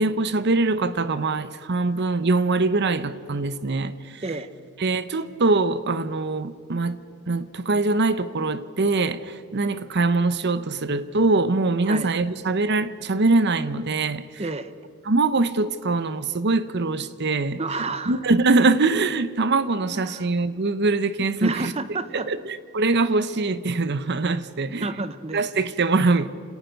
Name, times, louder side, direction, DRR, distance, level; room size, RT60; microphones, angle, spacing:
voice 1, 0.0-4.2 4.8-7.0 7.3-14.2 15.1-17.6 18.1-21.7 22.1-22.4 22.7-24.9 25.3-26.3, right 3 dB, 55° right, 0.8 m, -23 dB
voice 2, 14.4-14.7 17.6-18.2 19.9-20.3 21.4-22.3 24.8-25.4, right 3 dB, 30° right, 1.0 m, -30 dB
29.5 x 18.0 x 5.3 m
head